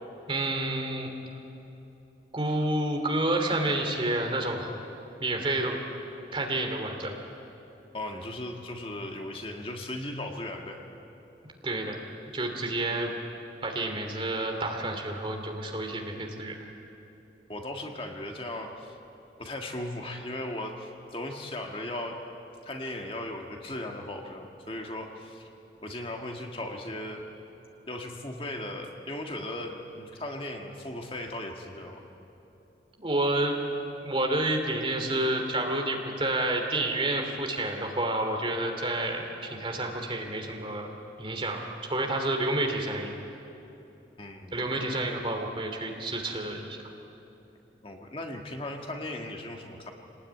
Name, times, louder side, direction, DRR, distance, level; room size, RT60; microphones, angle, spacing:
voice 1, 0.3-1.1 2.3-4.7 5.2-5.8 6.3-7.1 11.6-12.0 12.3-13.1 13.6-16.7 33.0-33.6 34.0-40.9 41.2-41.6 41.9-43.1 44.5-46.8, right 2 dB, 30° right, 2 dB, 2.9 m, -29 dB
voice 2, 7.9-10.8 17.5-19.0 19.4-22.2 22.6-25.5 25.8-27.3 27.9-32.0 44.2-44.6 47.8-49.9, left 1 dB, 30° left, 2 dB, 1.7 m, -37 dB
27.0 x 19.5 x 9.7 m, 3.0 s
head